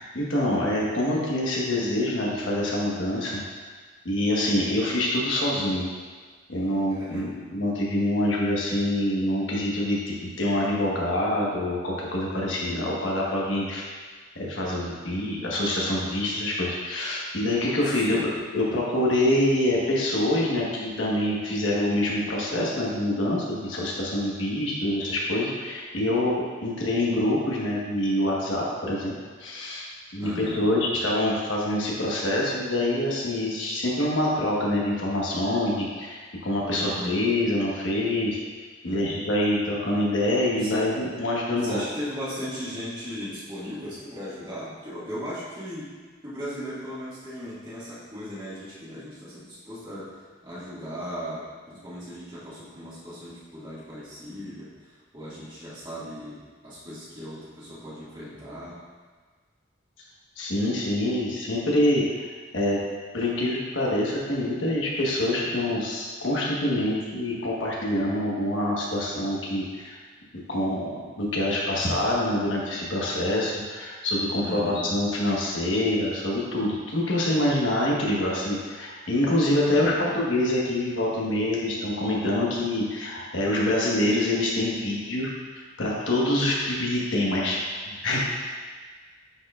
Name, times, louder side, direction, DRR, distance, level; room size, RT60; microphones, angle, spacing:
voice 1, 0.0-3.4 4.0-5.9 6.5-13.8 14.3-18.2 18.5-26.3 26.6-29.1 29.4-38.4 38.8-41.8 60.4-62.3 62.5-62.8 63.1-70.0 70.5-70.9 71.1-85.3 85.8-87.6 87.9-88.2, left 1 dB, 85° left, -4 dB, 1.3 m, -25 dB
voice 2, 6.9-7.3 18.1-18.3 30.2-30.6 36.7-37.2 38.9-39.2 40.6-40.9 41.6-46.0 46.2-58.8 74.4-74.9 79.6-80.1, equal, 25° right, -10 dB, 1.8 m, -37 dB
9.3 x 4.4 x 2.4 m, 1.5 s
head